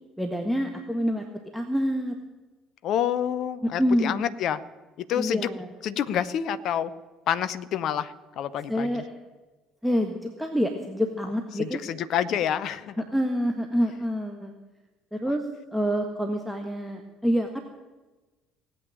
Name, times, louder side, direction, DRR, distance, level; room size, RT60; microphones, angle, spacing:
voice 1, 0.2-1.2 1.5-2.2 3.6-4.3 5.2-5.7 8.7-9.0 9.8-11.8 13.1-14.5 15.1-15.4 15.7-17.6, equal, ahead, 3 dB, 1.6 m, -27 dB
voice 2, 2.8-4.6 5.0-5.4 5.8-6.9 7.3-9.0 11.5-13.0, left 9 dB, 50° left, 14 dB, 0.7 m, -28 dB
18.0 x 8.8 x 9.0 m, 1.2 s
figure-of-eight pair, 55°, 0 cm